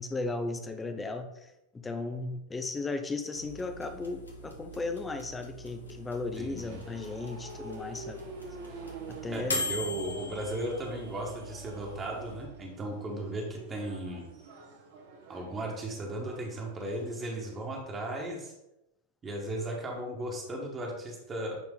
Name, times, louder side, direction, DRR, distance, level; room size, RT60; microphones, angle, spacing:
voice 1, 0.0-1.5 1.8-8.2 9.1-9.6, left 3 dB, 15° left, 7 dB, 0.8 m, -36 dB
sound 1, 3.4-12.4, left 1 dB, 75° left, 1.3 m, -41 dB
voice 2, 6.4-6.8 9.3-14.3 15.3-18.5 19.2-21.6, right 1 dB, 20° right, 0 dB, 1.8 m, -36 dB
sound 2, 6.5-17.7, right 3 dB, 55° right, 1.5 m, -47 dB
9.7 x 4.3 x 3.9 m, 0.90 s
figure-of-eight pair, 90°, 0 cm